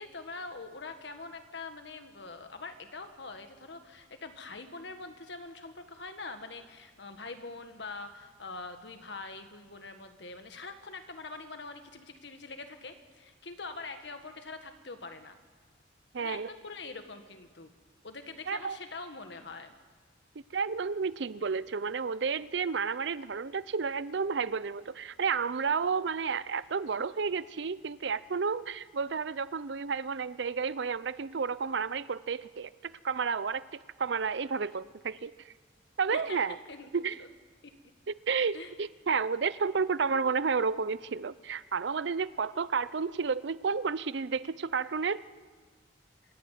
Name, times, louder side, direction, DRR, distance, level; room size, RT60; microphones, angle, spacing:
voice 1, 0.0-15.4 16.2-17.7 18.0-19.7 36.1-37.3 38.5-38.7, left 3 dB, 65° left, 7 dB, 1.6 m, -44 dB
voice 2, 16.1-16.5 18.5-18.8 20.5-33.6 34.0-35.3 36.0-36.6 36.9-37.2 38.1-45.2, right 5 dB, 65° right, 17 dB, 0.5 m, -31 dB
26.5 x 10.5 x 9.3 m, 1.5 s
head